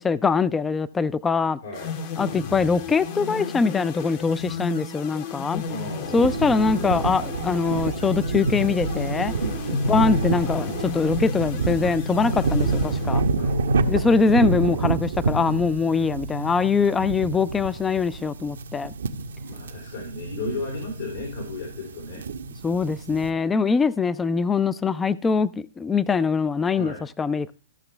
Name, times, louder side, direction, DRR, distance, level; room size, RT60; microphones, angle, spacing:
voice 1, 0.0-1.6 2.2-5.6 6.1-9.3 9.9-13.2 13.9-18.9 22.6-27.5, left 4 dB, 10° left, 0.4 m, -23 dB
voice 2, 1.6-1.9 5.7-6.3 9.4-9.6 13.3-13.9 19.5-22.2 26.7-27.0, left 2 dB, 75° left, 4.0 m, -35 dB
sound 1, 1.7-13.6, left 6 dB, 45° left, 1.2 m, -34 dB
sound 2, 6.1-23.3, right 3 dB, 85° right, 0.9 m, -27 dB
15.0 x 6.0 x 3.3 m
hypercardioid pair, 140°, 0 cm